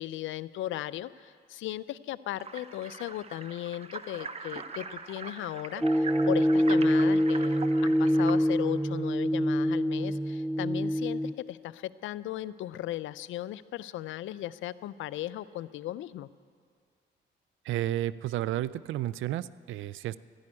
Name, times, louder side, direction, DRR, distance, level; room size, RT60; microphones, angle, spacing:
voice 1, 0.0-16.3, left 14 dB, 80° left, 17 dB, 0.5 m, -37 dB
sound 1, 2.4-8.4, right 4 dB, 30° right, 0.9 m, -42 dB
sound 2, 5.8-11.3, equal, 5° right, 0.3 m, -25 dB
voice 2, 17.6-20.2, right 13 dB, 80° right, 18 dB, 0.4 m, -32 dB
12.5 x 10.5 x 9.8 m, 2.1 s
cardioid pair, 90°, 20 cm